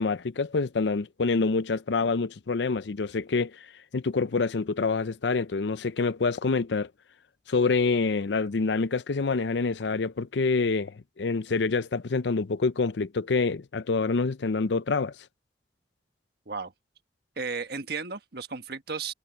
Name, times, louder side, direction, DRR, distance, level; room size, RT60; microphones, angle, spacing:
voice 1, 0.0-3.6 3.9-6.9 7.5-15.1, left 4 dB, 75° left, 0.6 m, -26 dB
voice 2, 17.4-19.1, right 5 dB, 60° right, 1.4 m, -34 dB
head